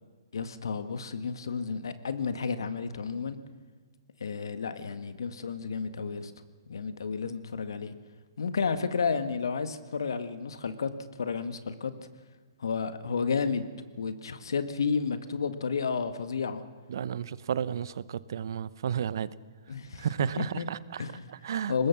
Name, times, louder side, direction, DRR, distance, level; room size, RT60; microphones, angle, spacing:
voice 1, 0.3-3.4 4.2-6.3 6.7-7.9 8.4-10.9 11.2-11.9 12.6-13.7 14.0-16.6 19.7-20.7 21.0-21.2 21.7-21.9, left 5 dB, 75° left, 1.7 m, -31 dB
voice 2, 16.9-19.3 20.0-21.0 21.3-21.7, right 8 dB, 60° right, 0.8 m, -32 dB
24.0 x 20.0 x 6.0 m
hypercardioid pair, 130°, 2 cm